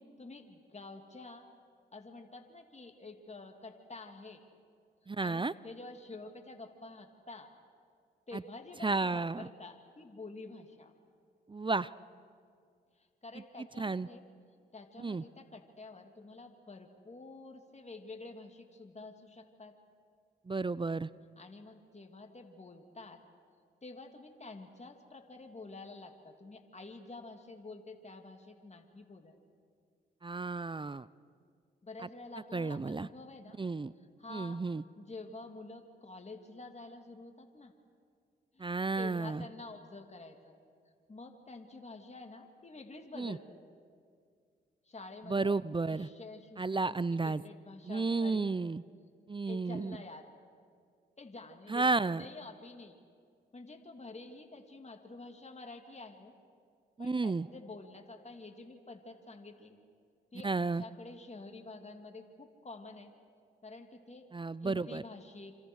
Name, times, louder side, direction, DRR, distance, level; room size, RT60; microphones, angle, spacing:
voice 1, 0.2-1.5 1.9-4.4 5.2-7.5 8.3-10.9 13.0-14.2 14.7-19.7 21.4-23.2 23.8-29.3 31.8-33.6 34.2-34.6 35.0-37.7 38.5-38.7 39.0-40.5 41.1-43.6 44.8-45.6 45.9-48.5 49.5-50.3 51.2-53.0 53.5-56.3 57.0-59.8 60.3-63.1 63.6-64.2 64.6-65.5, left 3 dB, 35° left, 4 dB, 3.0 m, -49 dB
voice 2, 5.1-5.5 8.3-8.4 8.8-9.5 11.5-11.9 13.8-14.1 15.0-15.2 20.5-21.1 30.2-31.1 32.5-33.1 33.6-33.9 34.3-34.8 38.6-39.4 43.2-43.4 45.3-46.1 46.6-47.4 47.8-48.8 49.3-50.0 51.7-52.3 57.0-57.5 60.4-60.8 64.3-65.0, right 3 dB, 25° right, 18 dB, 0.6 m, -32 dB
27.5 x 26.5 x 6.5 m, 2.2 s
supercardioid pair, 50°, 21 cm